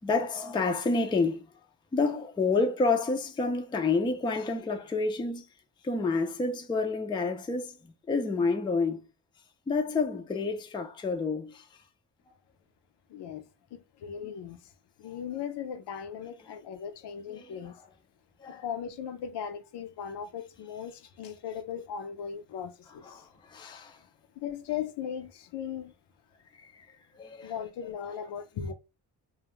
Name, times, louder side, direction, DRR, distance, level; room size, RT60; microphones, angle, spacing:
voice 1, 0.0-1.5 1.9-5.5 5.8-9.0 9.7-11.7 17.3-17.6 18.4-18.6 23.0-24.0 26.6-26.9 27.2-27.5, left 3 dB, 15° left, 0.3 m, -29 dB
voice 2, 13.1-14.7 15.0-17.8 18.5-23.3 24.4-25.9 27.4-28.7, left 8 dB, 70° left, 0.5 m, -38 dB
2.3 x 2.0 x 2.9 m
cardioid pair, 100°, 42 cm